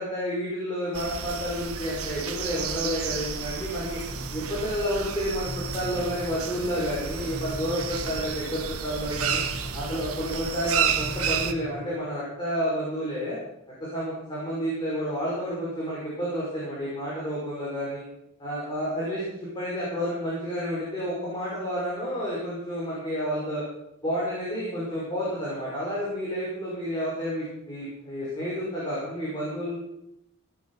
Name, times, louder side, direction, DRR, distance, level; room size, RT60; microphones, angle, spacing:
voice 1, 0.0-4.0 4.3-9.4 9.7-13.4 13.8-18.0 18.4-23.6 24.0-29.7, equal, 20° left, -8 dB, 5.9 m, -30 dB
sound 1, 0.9-11.5, right 7 dB, 80° right, 1.3 m, -31 dB
sound 2, 4.1-11.7, equal, 40° left, 6.6 m, -41 dB
18.0 x 11.5 x 5.7 m, 0.81 s
head